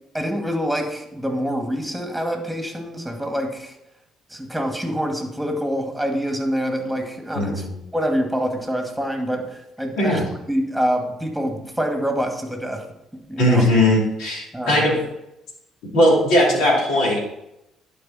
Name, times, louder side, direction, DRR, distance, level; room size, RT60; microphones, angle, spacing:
voice 1, 0.1-3.7 4.3-7.7 7.9-12.9 13.3-13.7 14.5-14.8, equal, ahead, 3 dB, 2.1 m, -26 dB
voice 2, 7.3-7.7 10.0-10.2 13.4-15.0 15.9-17.2, left 1 dB, 70° left, -3 dB, 2.9 m, -18 dB
11.0 x 4.9 x 4.2 m, 0.84 s
hypercardioid pair, 50°, 0 cm